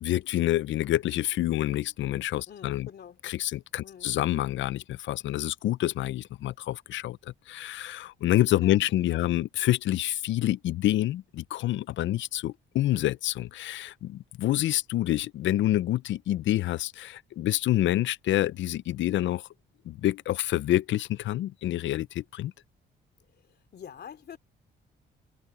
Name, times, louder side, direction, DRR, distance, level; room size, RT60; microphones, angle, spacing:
voice 1, 0.0-2.9 3.2-7.2 7.5-19.4 19.9-22.5, left 14 dB, 75° left, 0.6 m, -27 dB
voice 2, 2.5-3.2 3.8-4.1 8.6-9.2 23.4-24.4, left 8 dB, 55° left, 2.9 m, -46 dB
cardioid pair, 90°, 20 cm